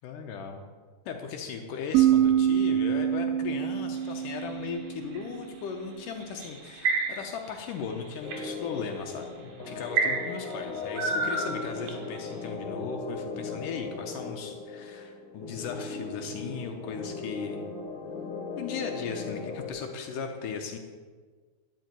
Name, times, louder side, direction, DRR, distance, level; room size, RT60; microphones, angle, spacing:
voice 1, 0.0-0.6 1.1-17.6 18.6-20.8, left 6 dB, 75° left, 3 dB, 2.4 m, -37 dB
sound 1, 1.9-5.5, right 10 dB, 90° right, 2.3 m, -25 dB
sound 2, 4.0-5.2 6.2-7.5 7.9-8.4 9.1-9.2 9.9-12.1, right 4 dB, 70° right, 3.2 m, -29 dB
sound 3, 8.2-19.7, left 3 dB, 50° left, 2.4 m, -38 dB
12.0 x 5.5 x 9.1 m, 1.5 s
omnidirectional pair, 3.9 m